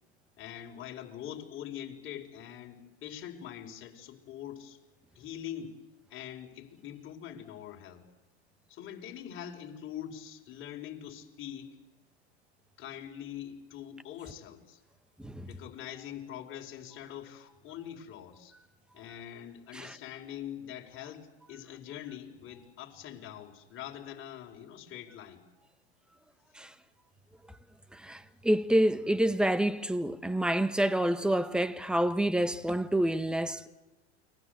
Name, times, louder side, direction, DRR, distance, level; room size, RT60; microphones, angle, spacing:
voice 1, 0.4-4.8 5.1-5.7 6.1-8.0 8.7-11.7 12.8-14.8 15.5-18.5 18.9-25.4, left 10 dB, 40° left, 4.8 m, -43 dB
voice 2, 15.2-15.5 19.7-20.0 26.5-26.7 27.9-33.7, right 1 dB, 5° right, 1.3 m, -28 dB
29.5 x 21.5 x 8.0 m
hypercardioid pair, 105°, 33 cm